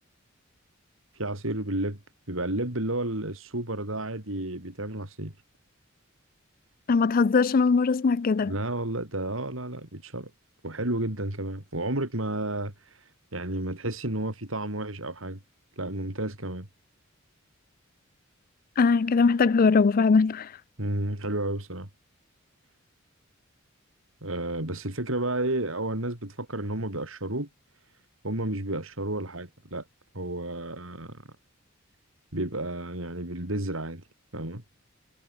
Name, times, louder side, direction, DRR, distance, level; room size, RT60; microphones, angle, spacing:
voice 1, 1.1-2.0 2.3-5.3 8.4-10.3 10.6-15.4 15.8-16.7 20.8-21.9 24.2-27.5 28.2-29.8 30.1-31.2 32.3-34.0 34.3-34.6, right 1 dB, 75° right, 4.5 m, -31 dB
voice 2, 6.9-8.5 18.8-20.5, left 4 dB, 45° left, 0.4 m, -21 dB
head